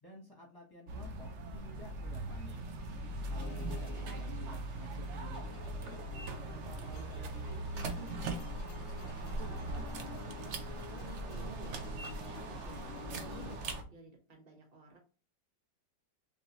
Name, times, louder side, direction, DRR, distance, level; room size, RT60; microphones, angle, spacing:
voice 1, 0.0-2.6 3.3-6.0 6.5-10.4, left 2 dB, 15° left, -1 dB, 0.8 m, -52 dB
sound 1, 0.9-13.8, right 2 dB, 85° right, 0.6 m, -40 dB
sound 2, 3.3-13.6, left 9 dB, 90° left, 1.3 m, -51 dB
voice 2, 3.6-4.1 11.0-15.0, right 3 dB, 25° right, 1 dB, 1.1 m, -54 dB
3.9 x 3.3 x 2.9 m, 0.35 s
omnidirectional pair, 2.1 m